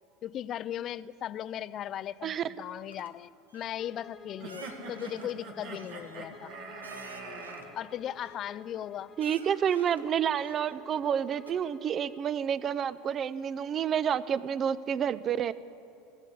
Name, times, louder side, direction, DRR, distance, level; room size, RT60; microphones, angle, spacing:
voice 1, 0.2-6.5 7.7-9.1, left 11 dB, 40° left, 17 dB, 0.4 m, -37 dB
sound 1, 2.9-3.1 3.5-3.9 4.5-5.3 5.7-7.8 8.2-8.9 9.2-10.1 10.4-11.1 11.5-11.6, right 3 dB, 85° right, 0.9 m, -52 dB
Bowed string instrument, 3.8-12.3, left 5 dB, 25° left, 1.3 m, -53 dB
sound 2, 4.4-7.6, right 3 dB, 60° right, 2.1 m, -43 dB
voice 2, 9.2-15.5, right 8 dB, 35° right, 17 dB, 0.5 m, -29 dB
17.5 x 8.1 x 8.4 m, 2.7 s
figure-of-eight pair, 75°, 0 cm